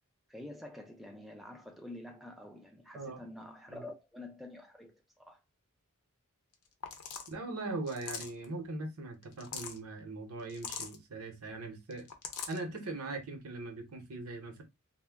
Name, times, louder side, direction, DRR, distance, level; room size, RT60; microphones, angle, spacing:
voice 1, 0.3-5.4, left 1 dB, ahead, 0.3 m, -48 dB
voice 2, 2.9-3.3 3.7-3.8 7.3-12.1 12.5-14.6, right 2 dB, 75° right, 0.8 m, -40 dB
sound 1, 6.5-6.6 6.8-7.3 7.9-8.4 9.2-9.8 10.5-11.0 11.9-12.6, left 7 dB, 85° left, 0.6 m, -41 dB
2.1 x 2.1 x 3.3 m
head